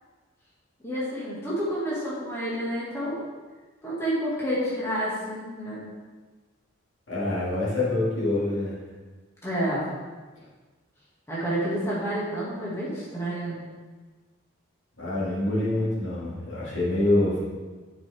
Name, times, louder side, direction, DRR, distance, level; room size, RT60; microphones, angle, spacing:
voice 1, 0.8-3.2 3.8-5.9 9.4-9.8 11.3-13.6, equal, 15° left, -8 dB, 1.8 m, -29 dB
voice 2, 7.1-8.7 15.0-17.4, left 2 dB, 65° left, -6 dB, 2.1 m, -25 dB
9.0 x 5.4 x 3.4 m, 1.3 s
head